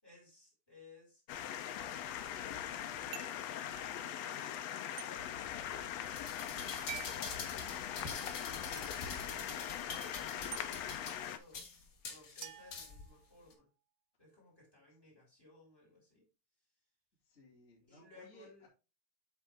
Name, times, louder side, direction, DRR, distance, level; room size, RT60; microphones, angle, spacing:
voice 1, 0.0-1.2 3.8-8.0 8.4-11.7 12.1-13.7 14.2-16.3 17.9-18.7, left 2 dB, 5° left, -2 dB, 4.6 m, -61 dB
sound 1, 1.3-11.4, left 10 dB, 75° left, 1.6 m, -41 dB
sound 2, 3.1-3.5 5.0-5.1 6.9-7.2 8.8-8.9 10.5-10.7 12.4-13.5, right 12 dB, 80° right, 2.1 m, -47 dB
sound 3, 6.1-13.1 13.5-13.6, left 4 dB, 45° left, 1.6 m, -46 dB
voice 2, 8.8-9.5 17.3-18.7, left 1 dB, 25° left, -5 dB, 2.6 m, -61 dB
8.3 x 5.2 x 3.6 m, 0.31 s
omnidirectional pair, 3.6 m